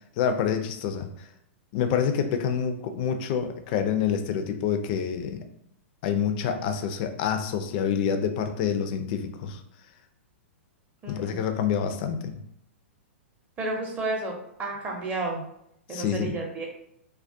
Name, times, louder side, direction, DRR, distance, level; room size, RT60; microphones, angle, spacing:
voice 1, 0.2-1.3 1.7-5.4 6.0-9.6 11.1-12.4 15.9-16.3, left 7 dB, 45° left, 7 dB, 0.3 m, -27 dB
voice 2, 11.0-11.4 13.6-14.3 14.6-15.4 15.9-16.7, right 2 dB, 20° right, -1 dB, 0.6 m, -31 dB
2.2 x 2.2 x 2.5 m, 0.74 s
figure-of-eight pair, 110°, 7 cm